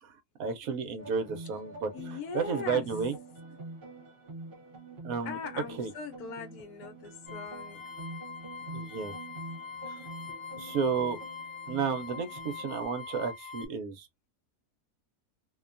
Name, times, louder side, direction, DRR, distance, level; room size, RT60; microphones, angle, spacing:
voice 1, 0.0-3.2 5.0-5.4 5.8-5.9 8.7-9.1 9.9-10.1 10.6-11.2 11.7-14.1, right 6 dB, 70° right, 1.0 m, -32 dB
sound 1, 1.0-12.9, right 2 dB, 45° right, 1.0 m, -46 dB
voice 2, 1.9-2.9 5.2-7.8, left 5 dB, 75° left, 1.1 m, -40 dB
sound 2, 7.3-13.7, left 5 dB, 30° left, 0.6 m, -43 dB
2.7 x 2.2 x 2.4 m
omnidirectional pair, 1.6 m